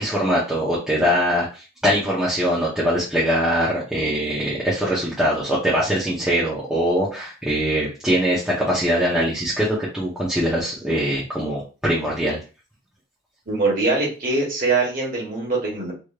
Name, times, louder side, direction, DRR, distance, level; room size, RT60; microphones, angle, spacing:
voice 1, 0.0-12.4, equal, 5° right, -8 dB, 0.9 m, -22 dB
voice 2, 13.5-15.9, right 3 dB, 40° right, -3 dB, 1.5 m, -22 dB
3.2 x 3.0 x 2.4 m, 0.33 s
head